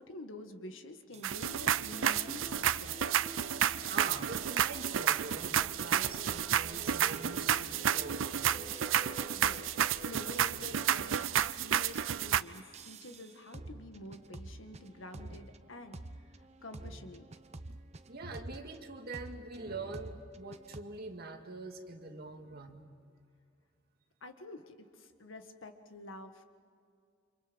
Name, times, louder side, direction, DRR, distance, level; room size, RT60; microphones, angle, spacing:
voice 1, 0.0-3.0 9.3-9.7 10.0-16.0 16.6-17.3 24.2-26.5, left 2 dB, 85° left, 6 dB, 1.8 m, -48 dB
sound 1, 1.1-18.8 19.1-20.8, right 2 dB, 35° right, 0.9 m, -52 dB
sound 2, 1.2-12.4, right 9 dB, 90° right, 0.5 m, -31 dB
sound 3, 1.5-10.4, equal, 20° left, 2.6 m, -50 dB
voice 2, 3.9-8.6 17.7-17.8 18.1-22.9, right 3 dB, 55° right, 4 dB, 2.1 m, -44 dB
29.5 x 26.5 x 5.4 m, 2.3 s
head